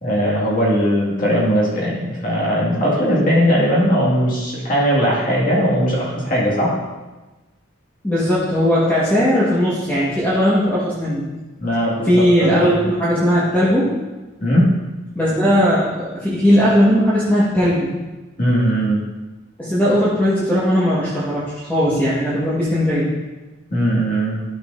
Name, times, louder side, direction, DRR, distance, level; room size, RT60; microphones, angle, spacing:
voice 1, 0.0-6.7 11.6-12.8 14.4-14.7 18.4-19.0 23.7-24.4, equal, 40° left, -6 dB, 2.1 m, -19 dB
voice 2, 8.0-11.2 12.0-13.9 15.1-17.9 19.6-23.1, equal, 10° left, -10 dB, 1.5 m, -17 dB
12.5 x 6.5 x 2.7 m, 1.2 s
head